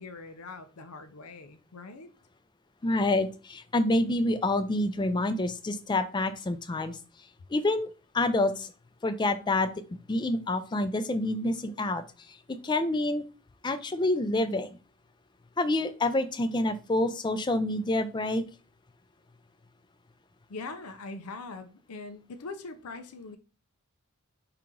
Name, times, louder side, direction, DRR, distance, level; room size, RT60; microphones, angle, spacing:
voice 1, 0.0-2.1 20.5-23.4, left 3 dB, 85° left, 0.6 m, -42 dB
voice 2, 2.8-7.0 7.5-7.9 8.1-8.7 9.0-9.7 10.1-12.0 12.3-12.4 12.6-13.2 13.6-14.8 15.6-18.4, left 2 dB, 20° left, 0.3 m, -27 dB
4.9 x 2.9 x 3.7 m
head